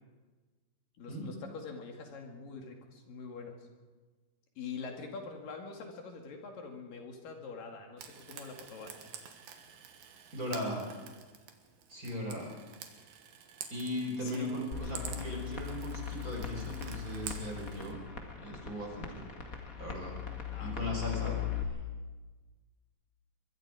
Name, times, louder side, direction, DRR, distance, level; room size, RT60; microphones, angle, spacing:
voice 1, 1.0-3.6 4.6-9.1 14.2-14.5 20.5-20.8 21.2-21.4, left 5 dB, 75° left, 2 dB, 3.9 m, -44 dB
Frying (food), 8.0-17.9, right 8 dB, 80° right, 3.3 m, -49 dB
voice 2, 10.3-10.9 11.9-12.5 13.7-18.0 18.4-19.3 19.7-20.2 20.6-21.3, equal, 25° right, 0 dB, 4.9 m, -38 dB
sound 1, 14.7-21.6, left 10 dB, 30° left, 1.7 m, -39 dB
23.0 x 23.0 x 4.9 m, 1.3 s
omnidirectional pair, 3.9 m